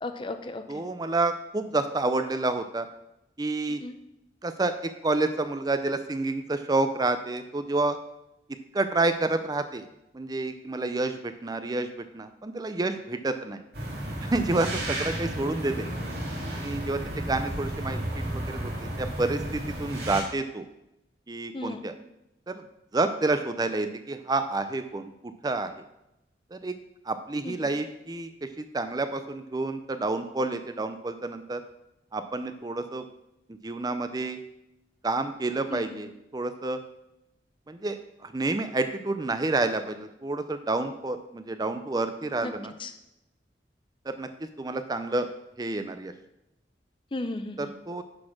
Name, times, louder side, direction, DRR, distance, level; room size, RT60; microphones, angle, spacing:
voice 1, 0.0-0.8 3.8-3.9 21.5-21.8 27.4-27.7 35.7-35.8 42.4-42.5 42.8-42.9 47.1-47.7, left 2 dB, 30° left, 8 dB, 0.6 m, -35 dB
voice 2, 0.7-2.9 3.4-3.8 4.4-8.0 8.7-9.8 10.1-11.9 12.1-13.6 14.3-15.9 16.5-17.0 17.3-18.0 18.3-20.7 21.3-21.9 22.5-22.6 22.9-25.1 25.4-25.7 26.5-26.7 27.1-31.6 32.1-33.0 33.6-34.4 35.0-36.8 37.7-38.0 38.2-42.7 44.1-44.3 44.6-45.3 45.6-46.1 47.6-48.0, right 2 dB, 20° right, 9 dB, 0.4 m, -29 dB
sound 1, 13.7-20.2, right 1 dB, 60° right, 2.4 m, -33 dB
9.7 x 4.2 x 5.9 m, 0.87 s
head